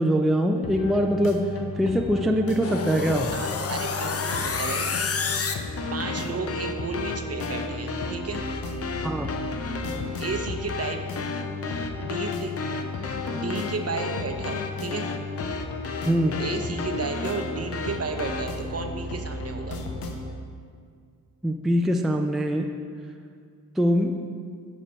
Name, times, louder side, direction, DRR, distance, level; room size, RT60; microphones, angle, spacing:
voice 1, 0.0-1.5 1.8-3.3 9.0-9.3 16.0-16.4 21.4-22.7 23.8-24.2, equal, ahead, 3 dB, 0.4 m, -23 dB
sound 1, 0.6-20.3, left 3 dB, 70° left, 0.8 m, -35 dB
sound 2, 2.6-18.5, left 4 dB, 40° left, 0.6 m, -32 dB
voice 2, 3.3-5.0 5.9-8.4 10.2-11.0 12.0-12.5 13.3-15.1 16.4-19.8, right 4 dB, 40° right, 5 dB, 0.7 m, -33 dB
8.7 x 3.2 x 5.2 m, 2.1 s
supercardioid pair, 40°, 37 cm